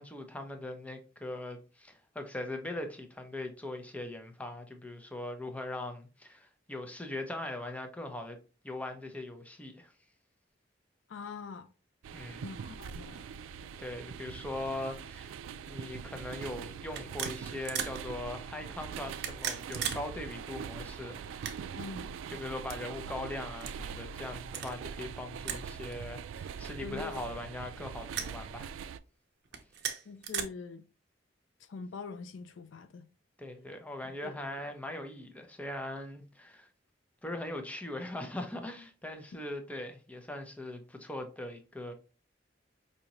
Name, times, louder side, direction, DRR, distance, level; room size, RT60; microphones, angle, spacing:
voice 1, 0.0-8.4 8.6-9.9 12.1-12.4 13.8-15.3 15.7-21.6 22.3-28.8 33.4-36.7 37.2-41.9, left 1 dB, 10° left, 0.6 m, -40 dB
voice 2, 11.1-11.7 12.4-13.3 21.8-22.1 26.8-27.2 30.0-30.8 31.7-33.1 34.2-34.4, left 4 dB, 70° left, 0.4 m, -43 dB
sound 1, 12.0-29.0, right 7 dB, 90° right, 0.3 m, -43 dB
sound 2, 15.8-16.0 16.9-18.0 19.1-20.0 20.3-20.4 21.2-21.9 22.6-22.8 23.6-23.8 24.5-24.7 25.5-25.7 25.9-26.0 27.0-27.5 28.1-28.3 29.5-30.4, right 8 dB, 60° right, 0.6 m, -37 dB
5.0 x 2.7 x 2.9 m
head